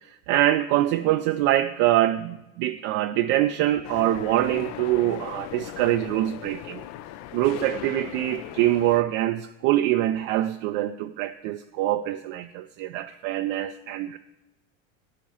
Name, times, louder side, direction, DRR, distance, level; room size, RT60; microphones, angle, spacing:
voice 1, 0.3-6.8 7.3-14.2, right 14 dB, 50° right, 8 dB, 0.5 m, -24 dB
sound 1, 3.8-9.0, left 13 dB, 40° left, 0.4 m, -38 dB
13.5 x 10.0 x 2.8 m, 0.96 s
hypercardioid pair, 100°, 40 cm